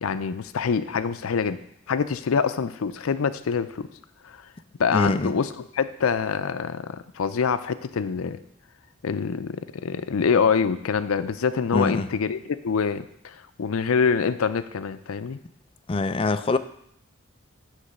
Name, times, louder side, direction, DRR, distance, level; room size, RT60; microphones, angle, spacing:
voice 1, 0.0-1.6 1.9-3.9 4.2-4.4 4.8-8.4 9.0-12.4 12.6-15.4, left 6 dB, 90° left, 12 dB, 0.5 m, -25 dB
voice 2, 4.9-5.3 11.7-12.1 15.9-16.6, left 3 dB, 25° left, 12 dB, 0.3 m, -24 dB
9.7 x 3.3 x 6.5 m, 0.72 s
head